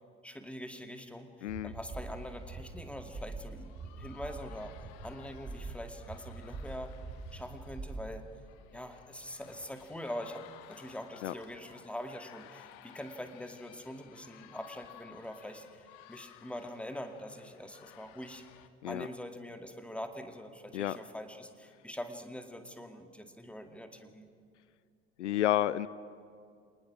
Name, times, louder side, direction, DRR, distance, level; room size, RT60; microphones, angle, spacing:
voice 1, 0.2-4.7 5.0-6.9 7.3-8.3 8.7-18.4 18.9-24.3, equal, 5° left, 6 dB, 2.1 m, -44 dB
voice 2, 1.4-1.7 11.2-11.3 18.8-19.1 20.7-21.0 25.2-25.9, left 13 dB, 75° left, 18 dB, 0.6 m, -30 dB
sound 1, 1.5-8.2, right 3 dB, 30° right, 4.2 m, -44 dB
sound 2, 2.1-18.7, left 13 dB, 60° left, 1.2 m, -56 dB
28.0 x 19.5 x 6.1 m, 2.3 s
figure-of-eight pair, 60°, 35 cm